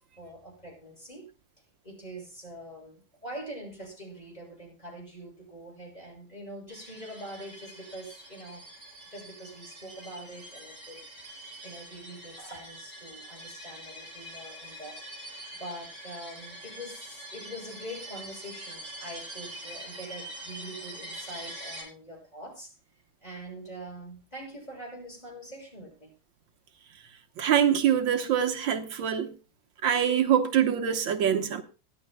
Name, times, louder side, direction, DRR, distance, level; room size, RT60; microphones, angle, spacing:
voice 1, 0.2-1.3 1.8-8.6 9.1-11.0 11.6-15.0 15.6-22.7 23.2-26.1, right 1 dB, 20° left, 6.5 m, -44 dB
sound 1, 6.7-21.8, right 1 dB, 55° right, 8.6 m, -44 dB
voice 2, 27.4-29.3 29.8-31.6, right 9 dB, 80° right, 1.7 m, -24 dB
24.0 x 10.5 x 2.2 m
omnidirectional pair, 2.1 m